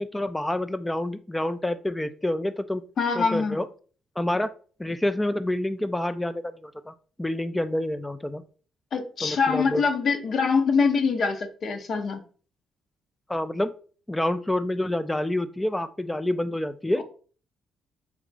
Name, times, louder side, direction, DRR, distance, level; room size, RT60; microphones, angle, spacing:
voice 1, 0.0-2.8 3.1-3.7 4.2-4.5 4.8-8.4 9.2-9.8 13.3-13.7 14.1-17.0, left 1 dB, 10° left, 11 dB, 0.3 m, -28 dB
voice 2, 3.0-3.6 8.9-12.2 17.0-17.1, left 5 dB, 55° left, 6 dB, 0.7 m, -24 dB
3.6 x 3.0 x 3.8 m, 0.40 s
cardioid pair, 90°, 0 cm